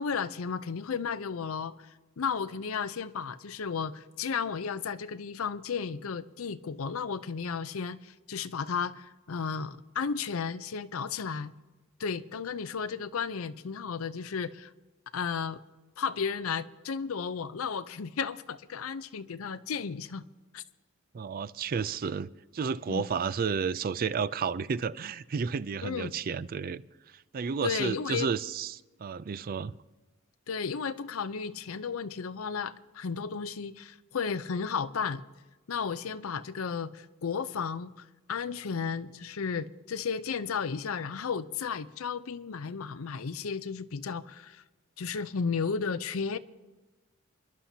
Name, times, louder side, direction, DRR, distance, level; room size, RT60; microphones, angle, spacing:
voice 1, 0.0-1.9 2.2-11.5 12.0-14.7 15.1-15.6 16.0-20.2 20.5-20.6 22.9-23.0 25.8-26.1 27.6-28.3 30.5-35.2 35.7-44.6 45.0-46.4, left 6 dB, 75° left, 0.6 m, -33 dB
voice 2, 21.1-26.8 27.3-29.7, right 6 dB, 45° right, 0.4 m, -32 dB
27.5 x 11.5 x 2.8 m
head